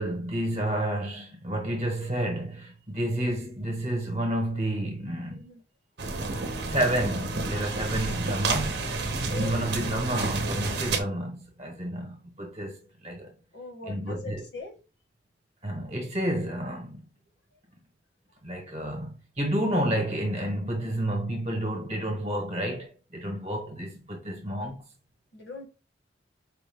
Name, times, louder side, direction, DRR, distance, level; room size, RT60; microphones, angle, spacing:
voice 1, 0.0-5.4 6.7-13.3 13.9-14.4 15.6-17.0 18.4-24.8, right 1 dB, 35° right, 1.0 m, -30 dB
sound 1, 6.0-11.0, right 3 dB, 60° right, 0.7 m, -30 dB
voice 2, 9.3-9.7 13.5-14.8 25.3-25.7, left 4 dB, 70° left, 1.4 m, -40 dB
4.9 x 2.2 x 3.4 m
head